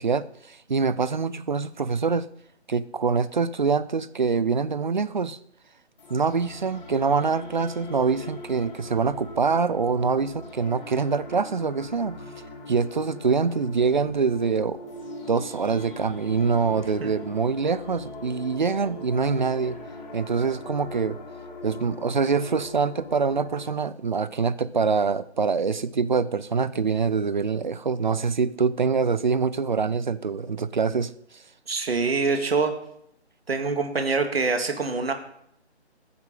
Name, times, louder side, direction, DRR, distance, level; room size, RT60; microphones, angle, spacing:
voice 1, 0.0-2.3 2.7-5.4 6.1-12.2 12.7-14.8 15.3-19.8 20.1-21.2 21.6-31.4, right 5 dB, 45° right, 16 dB, 0.6 m, -25 dB
sound 1, 6.0-23.8, left 2 dB, 40° left, 3.6 m, -41 dB
voice 2, 31.7-32.7 33.5-35.1, right 4 dB, 60° right, 6 dB, 2.0 m, -25 dB
19.5 x 9.7 x 3.7 m, 0.72 s
figure-of-eight pair, 165°, 34 cm